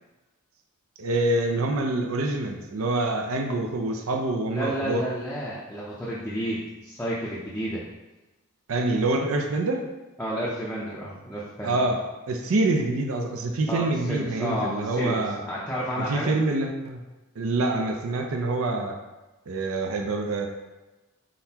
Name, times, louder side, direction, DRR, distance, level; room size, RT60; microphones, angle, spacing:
voice 1, 1.0-5.0 8.7-9.8 11.6-12.0 12.3-15.4 16.0-17.0 17.4-18.9 19.5-20.5, right 2 dB, 75° right, 3 dB, 0.5 m, -26 dB
voice 2, 4.5-7.8 10.2-11.9 13.7-16.3, equal, 5° left, -7 dB, 0.5 m, -31 dB
4.3 x 3.9 x 2.8 m, 1.1 s
head